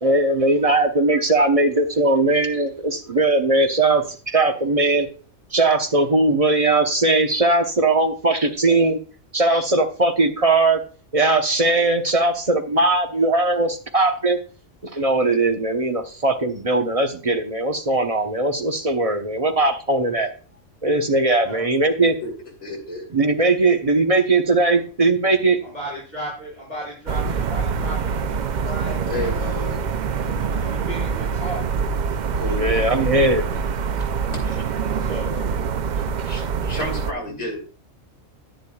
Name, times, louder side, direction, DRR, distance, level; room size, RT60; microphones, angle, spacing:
voice 1, 0.0-5.1 5.5-9.0 9.3-10.8 11.1-14.4 14.8-20.3 20.8-22.1 23.1-25.6 32.5-33.4, right 2 dB, 30° right, 5 dB, 0.9 m, -19 dB
voice 2, 22.6-23.0 29.1-29.8 32.3-33.0 34.3-34.6 35.9-37.6, left 2 dB, 60° left, 0 dB, 3.1 m, -32 dB
voice 3, 25.6-29.3 30.1-31.8 34.9-35.5, equal, 30° left, -7 dB, 5.8 m, -35 dB
sound 1, 27.1-37.1, right 6 dB, 80° right, 0.4 m, -25 dB
10.0 x 10.0 x 2.3 m, 0.38 s
omnidirectional pair, 1.4 m